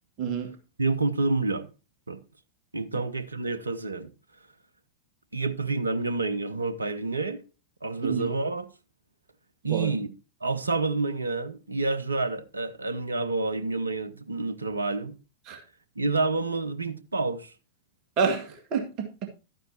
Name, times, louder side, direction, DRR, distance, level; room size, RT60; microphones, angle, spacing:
voice 1, 0.2-0.6 8.0-8.3 9.7-9.9 15.5-15.6 18.2-19.3, right 6 dB, 40° right, 2.0 m, -28 dB
voice 2, 0.8-1.7 2.1-2.2 2.7-4.1 5.3-7.4 7.8-8.7 9.6-10.1 10.4-15.2 16.0-17.5, right 3 dB, 80° right, 0.8 m, -28 dB
12.5 x 9.1 x 2.8 m
figure-of-eight pair, 90°, 0 cm